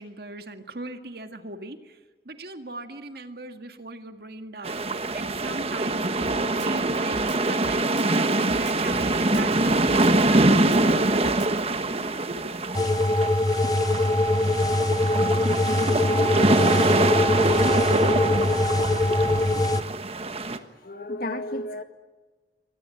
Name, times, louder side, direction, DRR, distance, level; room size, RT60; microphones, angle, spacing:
voice 1, 0.0-2.0 2.3-4.8 5.1-7.2 7.5-11.1, right 2 dB, 60° right, 7 dB, 1.9 m, -38 dB
sound 1, 4.6-20.6, right 2 dB, 35° right, 1.3 m, -24 dB
Drum kit, 6.3-11.6, right 3 dB, 80° right, 1.0 m, -40 dB
sound 2, 12.7-19.8, left 2 dB, 20° left, 0.7 m, -23 dB
voice 2, 20.6-21.8, left 1 dB, 55° left, 8 dB, 2.0 m, -33 dB
25.0 x 19.0 x 9.2 m, 1.3 s
head